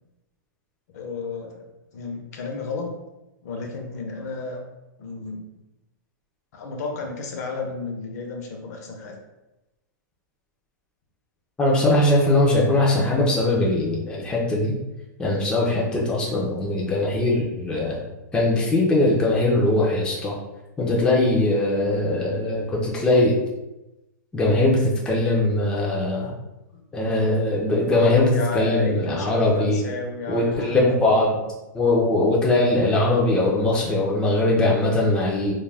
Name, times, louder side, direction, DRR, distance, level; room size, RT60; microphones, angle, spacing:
voice 1, 0.9-1.6 1.9-2.9 3.4-4.6 5.0-5.5 6.5-9.1 26.7-26.8 27.9-31.2, left 4 dB, 55° left, 2 dB, 0.6 m, -32 dB
voice 2, 11.6-14.7 15.2-18.0 18.3-20.4 20.8-23.4 24.3-26.3 26.9-29.8 30.3-31.4 31.7-35.5, left 2 dB, 10° left, -5 dB, 0.4 m, -21 dB
2.3 x 2.1 x 3.2 m, 0.98 s
hypercardioid pair, 145°, 10 cm